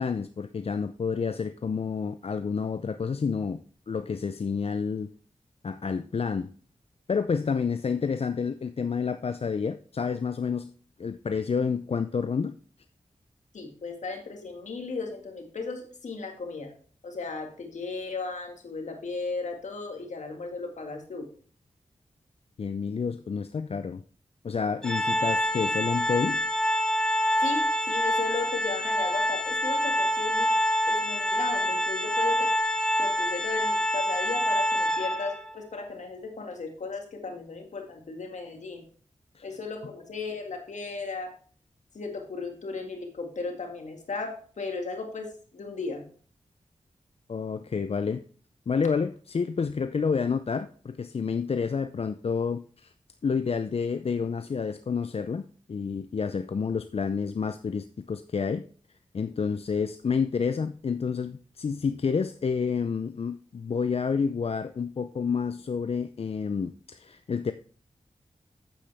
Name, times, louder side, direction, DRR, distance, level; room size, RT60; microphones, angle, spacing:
voice 1, 0.0-3.6 3.9-5.1 5.6-6.5 7.1-10.7 11.0-12.5 22.6-24.0 24.4-26.4 39.4-39.5 47.3-48.2 48.7-52.9 53.2-58.6 59.1-67.5, left 5 dB, 55° left, 10 dB, 0.5 m, -29 dB
voice 2, 13.5-16.7 17.0-21.3 27.4-30.5 30.9-32.5 33.0-38.8 39.4-41.3 41.9-46.0, left 4 dB, 75° left, 3 dB, 2.1 m, -35 dB
Organ, 24.8-35.5, equal, 5° left, 1.0 m, -26 dB
8.6 x 8.5 x 3.5 m, 0.44 s
cardioid pair, 40°, 12 cm